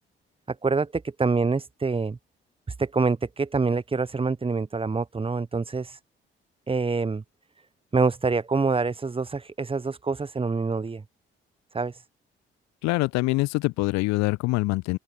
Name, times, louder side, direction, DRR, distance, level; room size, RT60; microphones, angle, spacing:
voice 1, 0.6-2.2 2.8-6.0 6.7-7.2 7.9-11.0 11.7-12.0, right 4 dB, 20° right, 1.0 m, -26 dB
voice 2, 12.8-15.0, left 22 dB, 65° left, 1.0 m, -24 dB
open air
figure-of-eight pair, 40°, 30 cm